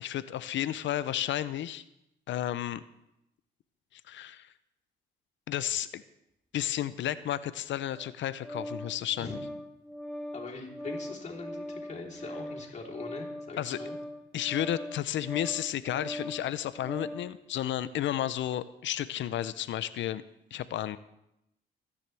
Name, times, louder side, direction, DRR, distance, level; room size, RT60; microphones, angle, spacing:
voice 1, 0.0-1.8 2.3-2.8 3.9-4.5 5.5-6.0 6.5-9.4 13.6-13.8 14.3-20.2 20.5-21.0, left 12 dB, 70° left, 15 dB, 0.6 m, -32 dB
Organ, 7.9-17.3, left 1 dB, ahead, 1.9 m, -41 dB
voice 2, 10.3-14.0, left 3 dB, 35° left, -2 dB, 3.5 m, -42 dB
26.0 x 9.9 x 3.4 m, 0.84 s
cardioid pair, 90°, 20 cm